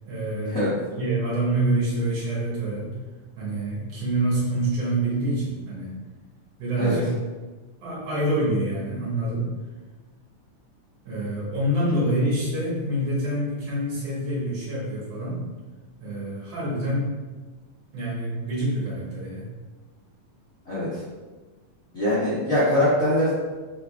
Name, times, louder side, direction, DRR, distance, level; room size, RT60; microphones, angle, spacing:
voice 1, 0.0-3.0 3.4-6.0 6.6-7.1 7.8-9.5 11.0-15.4 16.0-17.2 17.9-19.5, right 1 dB, 60° right, -7 dB, 2.2 m, -26 dB
voice 2, 20.6-21.0 21.9-23.3, left 1 dB, 65° left, -11 dB, 0.8 m, -22 dB
6.2 x 3.6 x 2.3 m, 1.3 s
omnidirectional pair, 3.6 m